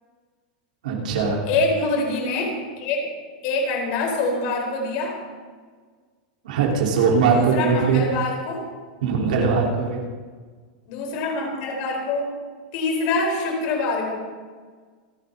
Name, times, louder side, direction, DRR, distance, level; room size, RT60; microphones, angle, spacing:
voice 1, 0.8-1.4 6.4-8.0 9.0-10.0, right 5 dB, 75° right, -2 dB, 4.5 m, -20 dB
voice 2, 1.5-3.1 3.4-5.2 7.3-8.7 10.9-12.3 12.7-14.2, left 3 dB, 40° left, 1 dB, 4.4 m, -25 dB
28.0 x 9.4 x 4.2 m, 1.5 s
supercardioid pair, 175°, 4 cm